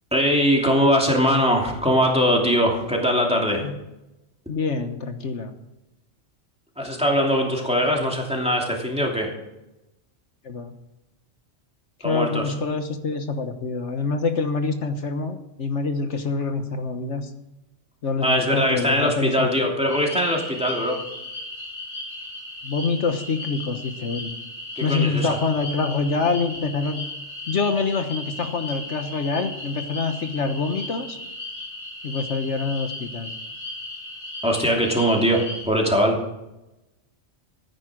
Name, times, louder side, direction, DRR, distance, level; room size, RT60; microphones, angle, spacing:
voice 1, 0.1-3.6 6.8-9.3 12.0-12.4 18.2-21.0 24.8-25.4 34.4-36.2, equal, 5° right, -1 dB, 2.8 m, -21 dB
voice 2, 4.5-5.5 7.8-7.9 10.4-10.7 12.0-17.3 18.0-19.7 22.6-24.3 24.8-27.1 27.5-31.2 32.0-33.3, left 4 dB, 80° left, 7 dB, 1.5 m, -26 dB
sound 1, 19.9-35.7, left 1 dB, 45° left, 3.6 m, -36 dB
14.5 x 9.9 x 6.2 m, 0.93 s
omnidirectional pair, 1.2 m